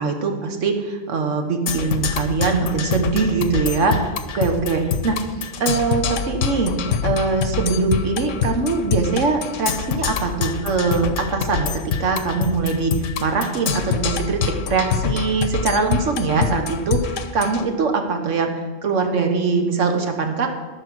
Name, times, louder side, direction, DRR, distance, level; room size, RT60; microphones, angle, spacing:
voice 1, 0.0-5.2 5.6-6.7 7.0-12.9 13.2-20.5, right 4 dB, 75° right, 4 dB, 1.5 m, -22 dB
Percussion, 1.7-17.6, left 7 dB, 80° left, 1.1 m, -25 dB
13.5 x 5.8 x 6.1 m, 1.3 s
omnidirectional pair, 1.3 m